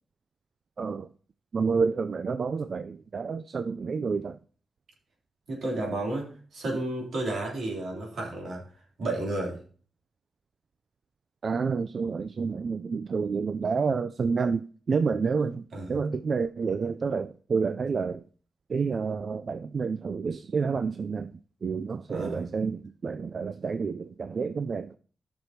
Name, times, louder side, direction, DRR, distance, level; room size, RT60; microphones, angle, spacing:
voice 1, 0.8-1.1 1.5-4.4 11.4-15.6 15.9-18.2 18.7-21.3 21.6-25.0, right 5 dB, 50° right, 0.3 m, -29 dB
voice 2, 5.5-8.6 9.0-9.6 15.7-15.9 22.1-22.5, right 2 dB, 75° right, 3.1 m, -32 dB
14.5 x 6.1 x 2.8 m
cardioid pair, 105°, 0 cm